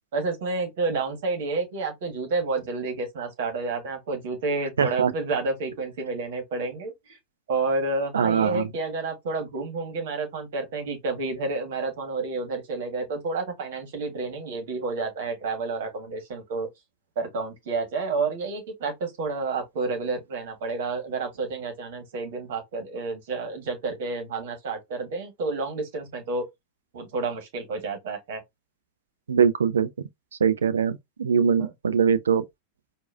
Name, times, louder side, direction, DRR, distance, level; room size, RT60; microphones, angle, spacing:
voice 1, 0.1-7.2 7.5-16.7 17.1-26.5 26.9-28.4 31.6-31.7, right 3 dB, 55° right, 1.5 m, -30 dB
voice 2, 4.8-5.1 8.1-8.7 29.3-29.9 30.4-32.4, right 6 dB, 70° right, 0.4 m, -22 dB
4.6 x 2.6 x 2.5 m
figure-of-eight pair, 90°, 0 cm